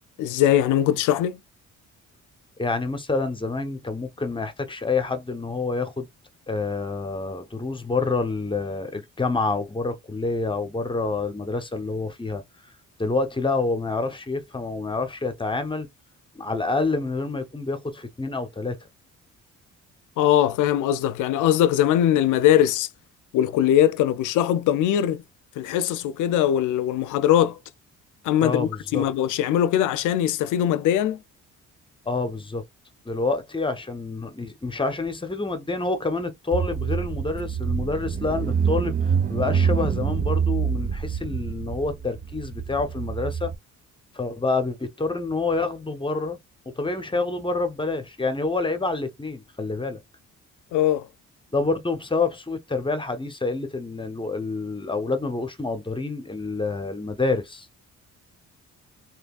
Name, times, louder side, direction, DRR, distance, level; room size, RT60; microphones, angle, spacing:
voice 1, 0.2-1.4 20.2-22.9 23.3-25.2 25.6-27.6 28.2-31.2 50.7-51.1, left 11 dB, 80° left, 0.5 m, -21 dB
voice 2, 2.6-6.1 6.5-12.4 13.0-15.9 16.3-18.8 28.4-29.0 32.1-32.6 33.0-43.5 44.1-46.4 46.8-50.0 51.5-57.7, left 3 dB, 15° left, 0.9 m, -27 dB
Car / Engine, 36.5-43.5, right 7 dB, 30° right, 0.6 m, -26 dB
3.3 x 3.0 x 2.4 m
cardioid pair, 90°, 30 cm